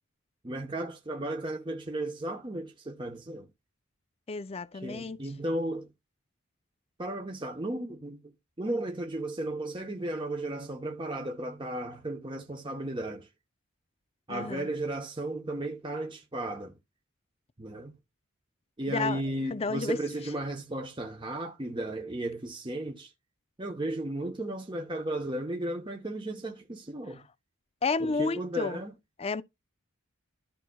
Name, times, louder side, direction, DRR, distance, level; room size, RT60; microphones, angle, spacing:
voice 1, 0.4-3.5 4.7-5.9 7.0-13.3 14.3-16.8 17.6-17.9 18.8-23.1 23.6-27.3 28.0-28.9, right 1 dB, 20° right, 0.9 m, -35 dB
voice 2, 4.3-5.2 14.3-14.7 18.9-19.2 19.5-20.0 27.8-28.8 29.2-29.4, left 4 dB, 25° left, 0.4 m, -31 dB
14.0 x 5.2 x 2.3 m
head